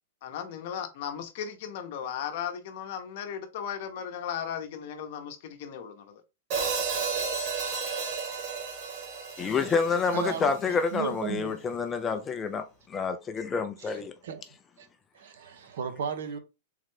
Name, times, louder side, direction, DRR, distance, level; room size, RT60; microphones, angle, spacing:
voice 1, 0.2-6.2, left 8 dB, 50° left, 0.8 m, -36 dB
Hi-hat, 6.5-10.7, right 5 dB, 45° right, 1.5 m, -32 dB
voice 2, 9.4-12.6 12.9-14.1, left 5 dB, 15° left, 0.4 m, -28 dB
voice 3, 10.1-11.6 13.8-13.9 14.2-14.4 14.8-14.9 15.1-16.4, right 7 dB, 70° right, 0.8 m, -35 dB
3.7 x 3.2 x 3.2 m
supercardioid pair, 155°, 0 cm